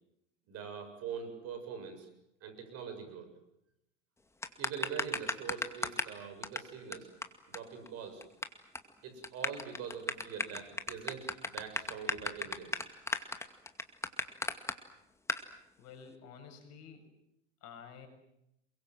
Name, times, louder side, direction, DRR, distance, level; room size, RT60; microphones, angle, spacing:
voice 1, 0.5-2.1 2.4-3.3 4.6-7.1 7.5-8.2 9.0-12.8, right 7 dB, 40° right, 8 dB, 7.2 m, -43 dB
sound 1, 4.4-6.1 6.4-6.6 6.9-7.0 7.2-7.3 7.5-7.6 7.9-8.4 8.7-8.9 9.2-14.7 15.3-15.4, left 2 dB, 5° left, 2.3 m, -34 dB
voice 2, 15.8-17.0 17.6-18.1, left 6 dB, 45° left, 6 dB, 7.3 m, -51 dB
28.5 x 23.0 x 7.8 m, 0.81 s
hypercardioid pair, 95°, 36 cm